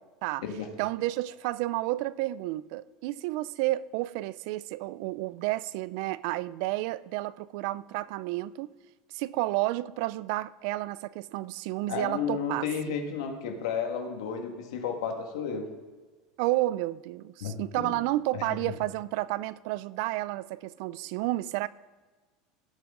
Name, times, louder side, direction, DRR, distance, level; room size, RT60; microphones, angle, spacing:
voice 1, 0.8-8.7 9.1-13.0 16.4-21.7, right 17 dB, 60° right, 19 dB, 0.4 m, -31 dB
voice 2, 11.9-15.7 17.4-18.0 18.3-18.7, left 6 dB, 90° left, 4 dB, 1.9 m, -33 dB
17.0 x 7.7 x 3.8 m, 1.3 s
supercardioid pair, 155°, 3 cm